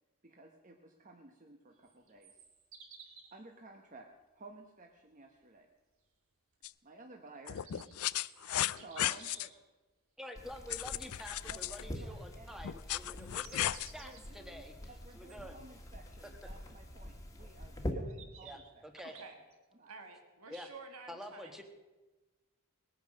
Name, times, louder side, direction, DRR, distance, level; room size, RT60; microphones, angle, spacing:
voice 1, 0.2-2.4 3.3-4.1 4.3-5.7 6.8-8.2 8.6-9.5 11.5-12.8 13.0-13.2 13.9-18.8 19.7-19.9, right 2 dB, 35° right, 3 dB, 1.1 m, -55 dB
sound 1, 1.8-3.4 7.3-9.6 13.0-14.2 15.3-15.4 17.2-17.3 18.1-19.5, right 5 dB, 65° right, 2.2 m, -55 dB
sound 2, 6.6-6.7 7.5-9.5 10.7-11.9 12.6-13.9, left 13 dB, 75° left, 0.4 m, -35 dB
voice 2, 10.2-14.7 15.1-15.5 18.4-19.2 20.5-20.7 21.1-21.6, equal, ahead, 6 dB, 1.2 m, -48 dB
sound 3, 10.3-17.9, left 1 dB, 15° left, 1.5 m, -45 dB
voice 3, 19.9-21.6, right 4 dB, 80° right, 5 dB, 1.9 m, -50 dB
20.5 x 9.4 x 6.4 m, 1.2 s
head